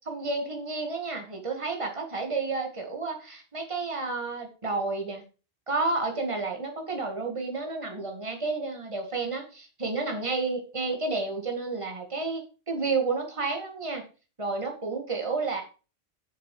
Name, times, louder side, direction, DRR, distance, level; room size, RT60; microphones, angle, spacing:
voice 1, 0.0-5.2 5.7-14.0 14.4-15.6, right 3 dB, 25° right, 3 dB, 2.1 m, -31 dB
7.8 x 6.8 x 5.9 m, 0.35 s
omnidirectional pair, 1.3 m